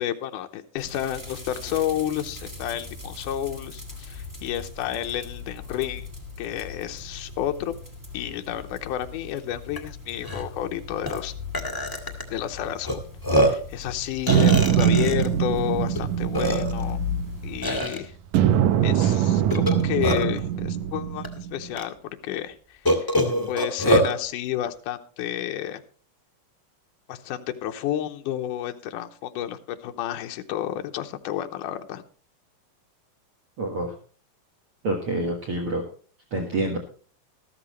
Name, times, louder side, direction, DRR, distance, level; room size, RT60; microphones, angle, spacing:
voice 1, 0.0-6.1 6.4-7.7 8.1-11.3 12.3-13.0 13.3-17.0 17.4-18.1 18.8-22.0 22.2-22.6 23.0-23.1 23.5-25.8 27.1-32.0, left 11 dB, 80° left, 6 dB, 2.3 m, -30 dB
sound 1, 0.8-17.8, left 5 dB, 5° right, 2.1 m, -39 dB
Burping eructation, 9.8-9.9 10.2-10.4 11.1-11.2 11.5-12.2 12.9-13.0 13.2-13.7 14.3-15.3 15.9-16.0 16.3-16.9 17.6-18.0 19.5-20.4 21.2-21.3 21.8-21.9 22.8-24.1, equal, 15° left, 0.6 m, -23 dB
sound 2, 14.3-17.9 18.3-21.7, right 9 dB, 75° right, 1.8 m, -22 dB
voice 2, 33.6-33.9 34.8-35.8 36.3-36.8, right 1 dB, 50° right, 2 dB, 2.1 m, -27 dB
14.0 x 13.5 x 3.1 m, 0.41 s
omnidirectional pair, 3.8 m